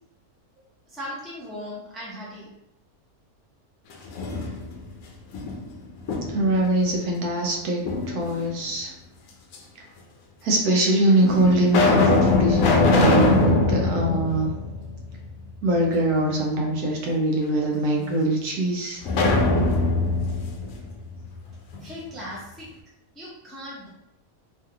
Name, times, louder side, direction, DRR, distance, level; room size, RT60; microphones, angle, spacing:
voice 1, 0.9-2.5 21.8-22.7 23.2-23.9, equal, ahead, -7 dB, 0.6 m, -37 dB
sound 1, 3.9-4.9 5.3-6.6 7.8-8.6 9.5-9.6 10.5-10.6 11.2-15.3 15.6-15.7 19.0-21.8, left 3 dB, 70° left, 0.9 m, -22 dB
voice 2, 6.3-8.9 10.4-14.5 15.6-19.0, right 1 dB, 85° right, 1 dB, 1.1 m, -22 dB
3.2 x 2.4 x 2.7 m, 0.84 s
omnidirectional pair, 1.6 m